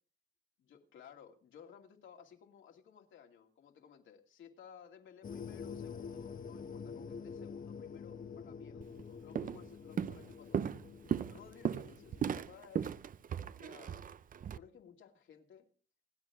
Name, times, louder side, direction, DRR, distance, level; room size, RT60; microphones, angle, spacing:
voice 1, 0.6-10.7 11.3-13.0 13.5-15.7, left 8 dB, 75° left, 3 dB, 2.6 m, -57 dB
sound 1, 5.2-12.4, left 6 dB, 45° left, 1.1 m, -47 dB
Walk footsteps, 8.8-9.0 9.4-9.7 10.0-14.6, right 8 dB, 45° right, 0.6 m, -37 dB
27.5 x 9.3 x 3.7 m, 0.41 s
cardioid pair, 90°, 20 cm